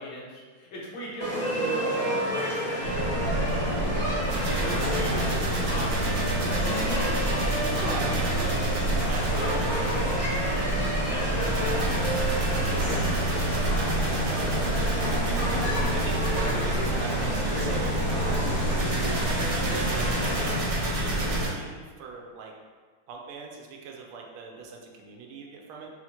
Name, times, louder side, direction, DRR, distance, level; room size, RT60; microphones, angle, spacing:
voice 1, 0.0-3.2 3.9-4.2 4.4-8.0 8.3-10.6 11.1-13.5, equal, 70° left, -5 dB, 1.6 m, -39 dB
sound 1, 1.2-20.5, equal, 20° right, 0.7 m, -31 dB
sound 2, 2.8-21.5, right 1 dB, 60° right, 1.1 m, -27 dB
voice 2, 7.7-8.4 9.1-9.6 14.7-15.4 15.9-18.5 19.3-22.5 23.1-25.9, right 4 dB, 80° right, 0 dB, 1.4 m, -40 dB
5.6 x 2.4 x 2.8 m, 1.5 s
omnidirectional pair, 2.4 m